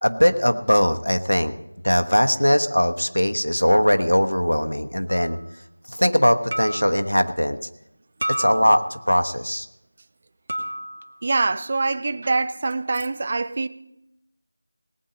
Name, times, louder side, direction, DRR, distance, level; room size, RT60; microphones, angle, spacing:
voice 1, 0.0-1.5 1.8-5.4 5.9-7.6 8.3-9.7, equal, 80° left, 1.2 m, -20 dB
sound 1, 5.1-5.4 6.5-7.0 8.2-9.1 10.5-11.1, right 1 dB, 45° right, 2.1 m, -30 dB
voice 2, 11.2-13.7, right 3 dB, 25° right, 0.4 m, -24 dB
18.5 x 8.8 x 5.2 m
figure-of-eight pair, 170°, 0 cm